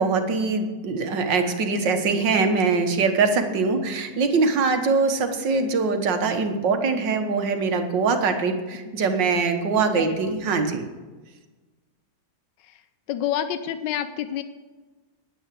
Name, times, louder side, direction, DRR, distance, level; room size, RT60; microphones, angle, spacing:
voice 1, 0.0-10.8, right 4 dB, 90° right, 6 dB, 2.0 m, -23 dB
voice 2, 9.9-10.3 12.6-12.8 13.1-14.4, left 10 dB, 85° left, 11 dB, 1.4 m, -29 dB
10.5 x 9.7 x 7.6 m, 1.3 s
omnidirectional pair, 1.9 m